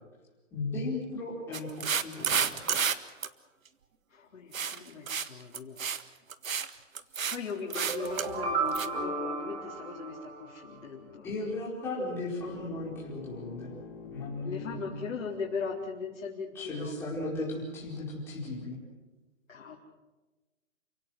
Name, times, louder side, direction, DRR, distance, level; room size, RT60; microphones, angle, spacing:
voice 1, 0.5-1.7 2.0-2.6 11.2-13.7 14.1-15.0 16.5-18.8, left 2 dB, 5° left, -6 dB, 4.6 m, -36 dB
sound 1, 1.5-2.9 3.2-3.3 4.5-4.8 5.1-5.3 5.5-6.0 6.3-6.7 6.9-7.4 7.7-8.3 8.7-8.9, right 7 dB, 90° right, 1.7 m, -30 dB
voice 2, 4.1-5.9 7.3-11.3 14.4-17.0 19.5-19.8, left 5 dB, 65° left, -3 dB, 4.1 m, -39 dB
sound 2, 7.7-10.8, right 3 dB, 55° right, 5.0 m, -34 dB
sound 3, 12.4-16.3, left 5 dB, 30° left, 3.3 m, -47 dB
29.5 x 17.0 x 7.8 m, 1.2 s
hypercardioid pair, 180°, 39 cm